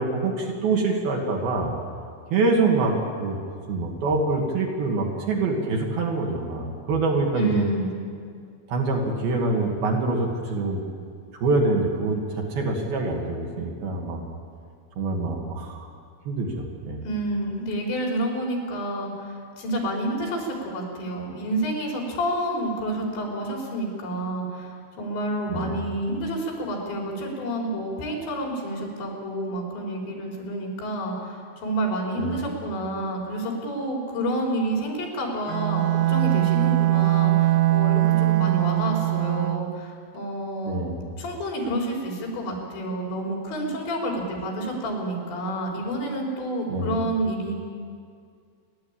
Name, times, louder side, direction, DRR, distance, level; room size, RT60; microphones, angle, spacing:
voice 1, 0.0-1.7 2.3-3.4 3.7-7.7 8.7-10.8 11.3-14.2 15.0-15.9 16.3-17.0 25.5-25.7 32.2-32.4 40.7-41.0 46.7-47.1, right 3 dB, 60° right, 0 dB, 3.8 m, -25 dB
voice 2, 7.3-8.0 17.1-40.8 41.2-47.5, right 1 dB, 70° left, -1 dB, 6.1 m, -29 dB
Bowed string instrument, 35.5-39.8, right 16 dB, 80° right, 2.8 m, -21 dB
29.5 x 12.0 x 8.7 m, 2.2 s
omnidirectional pair, 5.3 m